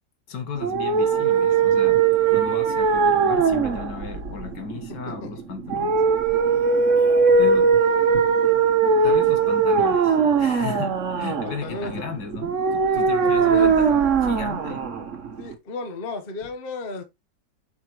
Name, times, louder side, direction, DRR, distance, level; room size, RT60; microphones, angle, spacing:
voice 1, 0.3-2.0 2.3-6.0 6.6-6.7 7.4-7.7 9.0-14.9, left 5 dB, 75° left, 2.1 m, -36 dB
sound 1, 0.6-15.5, right 5 dB, 50° right, 1.2 m, -20 dB
voice 2, 4.9-5.3 11.4-12.0 13.2-13.8 14.7-14.8 15.4-17.0, left 3 dB, 35° left, 1.1 m, -34 dB
7.9 x 5.7 x 3.0 m
omnidirectional pair, 1.9 m